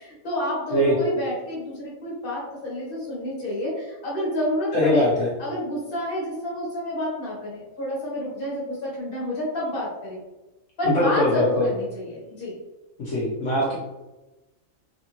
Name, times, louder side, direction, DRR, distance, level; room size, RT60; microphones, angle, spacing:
voice 1, 0.0-5.1 5.4-10.2 10.8-12.6, left 1 dB, 45° left, -5 dB, 1.3 m, -29 dB
voice 2, 4.7-5.3 10.9-11.7 13.0-13.8, left 1 dB, 65° left, -7 dB, 1.1 m, -22 dB
3.5 x 2.5 x 2.9 m, 1.1 s
omnidirectional pair, 1.4 m